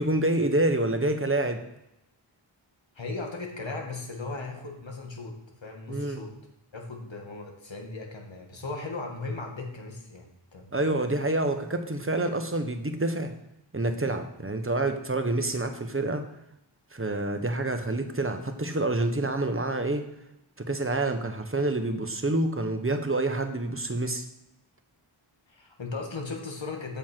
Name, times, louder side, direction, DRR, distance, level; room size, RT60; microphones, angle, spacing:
voice 1, 0.0-1.6 5.9-6.2 10.7-13.3 13.7-16.3 16.9-20.1 20.6-24.3, right 2 dB, 25° right, 6 dB, 1.2 m, -27 dB
voice 2, 3.0-6.3 6.7-10.7 25.5-27.0, left 3 dB, 65° left, 2 dB, 2.0 m, -37 dB
7.5 x 7.1 x 4.6 m, 0.86 s
cardioid pair, 40°, 49 cm